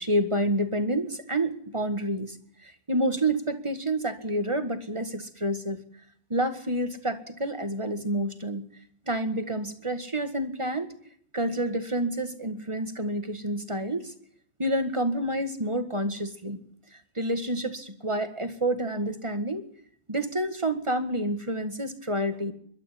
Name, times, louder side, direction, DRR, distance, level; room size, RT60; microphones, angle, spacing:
voice 1, 0.0-2.4 2.6-5.8 6.3-8.6 9.1-10.9 11.3-14.1 14.6-16.6 17.1-19.6 20.1-22.5, right 1 dB, 15° right, 9 dB, 1.5 m, -28 dB
21.5 x 12.5 x 10.0 m, 0.64 s
omnidirectional pair, 2.4 m